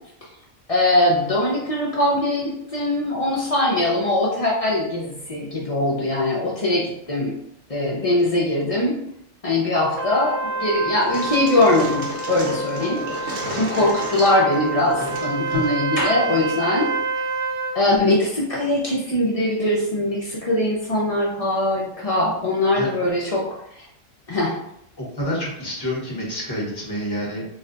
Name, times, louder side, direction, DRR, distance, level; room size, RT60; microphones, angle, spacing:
voice 1, 0.7-7.3 7.7-9.0 9.4-16.9 17.1-17.2 17.7-23.4 23.7-23.9 24.3-24.5, left 1 dB, 45° left, -5 dB, 0.4 m, -21 dB
Trumpet, 10.0-17.8, right 3 dB, 80° right, 1.0 m, -28 dB
sound 1, 11.0-16.5, equal, 55° right, 0.9 m, -33 dB
voice 2, 13.2-13.7 22.7-23.0 25.0-27.5, equal, 20° left, -5 dB, 0.9 m, -29 dB
2.4 x 2.2 x 3.7 m, 0.76 s
omnidirectional pair, 1.3 m